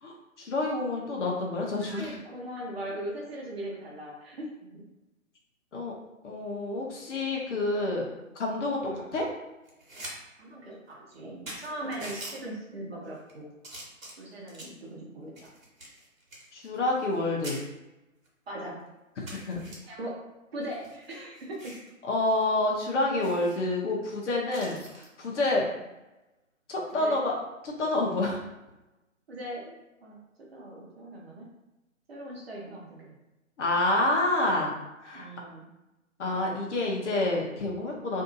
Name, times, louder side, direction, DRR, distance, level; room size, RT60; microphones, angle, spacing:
voice 1, 0.0-2.1 5.7-5.9 6.2-8.0 8.3-8.8 9.1-9.3 16.5-17.6 19.3-19.6 22.0-25.7 26.7-27.3 27.6-28.4 33.6-34.7 35.0-35.3 36.2-38.2, left 2 dB, 60° left, -2 dB, 0.8 m, -28 dB
voice 2, 1.8-4.8 8.8-9.1 10.4-13.5 14.2-15.5 18.5-18.8 19.8-20.2 20.5-21.7 25.5-25.8 27.0-27.2 29.3-29.7 30.0-30.2 30.5-31.4 32.1-33.2 35.1-35.7, right 1 dB, 50° right, -2 dB, 0.8 m, -39 dB
sound 1, 9.6-10.1 10.5-10.6 11.1-11.2 11.5-12.4 13.0-13.3 13.6-14.8 15.4-17.2 17.4-17.6 18.2-18.3 18.7-18.8 19.3-19.8 20.6-21.9 22.3-22.4 22.7-22.8 23.2-23.6 24.5-25.1 26.8-27.0, right 1 dB, 75° right, 1.2 m, -44 dB
2.7 x 2.6 x 2.5 m, 1.0 s
figure-of-eight pair, 140°, 40 cm